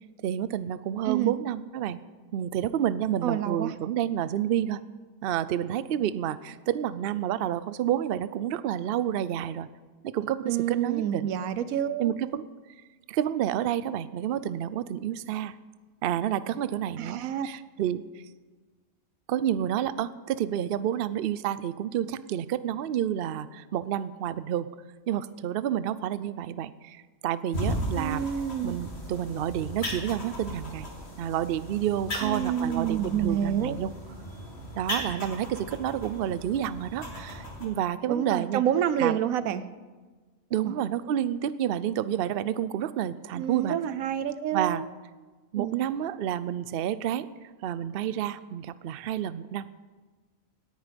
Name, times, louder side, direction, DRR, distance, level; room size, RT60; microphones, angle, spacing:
voice 1, 0.2-2.0 2.3-4.8 5.2-9.7 10.0-11.3 12.0-12.5 13.1-15.5 16.0-18.0 19.3-24.7 25.1-28.3 28.6-30.9 31.2-33.9 34.7-38.6 39.0-39.2 40.5-43.8 44.5-44.8 45.5-47.3 47.6-49.7, right 10 dB, 60° right, 15 dB, 0.6 m, -29 dB
voice 2, 3.2-3.7 10.5-12.1 17.0-17.5 17.8-17.9 28.0-28.8 32.2-33.8 38.1-39.6 40.7-40.8 43.3-44.8 45.5-45.8, right 9 dB, 90° right, 13 dB, 1.1 m, -28 dB
sound 1, 27.5-37.7, equal, 50° left, 2.8 m, -37 dB
18.0 x 10.0 x 5.2 m, 1.4 s
omnidirectional pair, 1.4 m